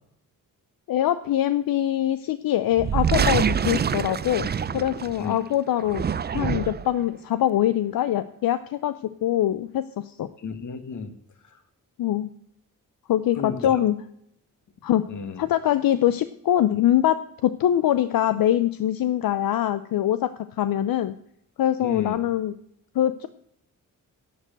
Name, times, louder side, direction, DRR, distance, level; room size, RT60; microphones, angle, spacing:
voice 1, 0.9-4.5 4.7-6.0 6.3-8.9 9.2-10.3 12.0-12.3 13.1-13.9 14.8-15.1 15.4-20.3 20.6-21.1 21.6-22.5 22.9-23.3, left 12 dB, 80° left, 12 dB, 0.6 m, -23 dB
sound 1, 2.7-5.3 5.8-7.0, right 7 dB, 30° right, 0.4 m, -25 dB
voice 2, 10.4-11.1 11.5-11.6 13.3-13.8 15.1-15.5 21.8-22.2, left 5 dB, 60° left, 8 dB, 1.8 m, -32 dB
11.0 x 6.8 x 7.5 m, 0.71 s
cardioid pair, 110°, 34 cm